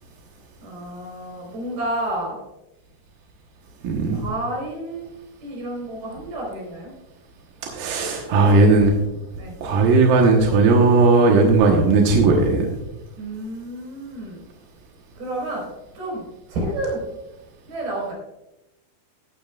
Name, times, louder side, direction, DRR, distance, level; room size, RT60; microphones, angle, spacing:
voice 1, 0.6-2.4 4.1-5.1 5.4-6.9 8.4-8.9 9.4-9.5 13.2-14.4 15.2-15.7 15.9-17.1 17.7-18.1, right 1 dB, 45° right, -3 dB, 5.9 m, -30 dB
voice 2, 3.8-4.2 7.6-8.9 9.6-12.7, right 3 dB, 65° right, 0 dB, 2.3 m, -16 dB
16.0 x 10.5 x 2.4 m, 0.94 s
omnidirectional pair, 5.4 m